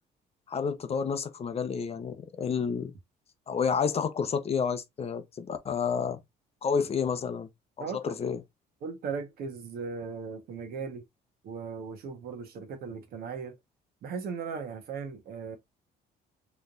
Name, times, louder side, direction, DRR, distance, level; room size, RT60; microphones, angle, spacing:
voice 1, 0.5-2.9 3.5-6.2 6.6-7.5 7.8-8.4, left 6 dB, 35° left, 0.7 m, -30 dB
voice 2, 7.8-8.2 8.8-11.0 11.4-13.6 14.0-15.6, right 5 dB, 65° right, 1.4 m, -37 dB
4.0 x 3.3 x 2.6 m
cardioid pair, 110°, 17 cm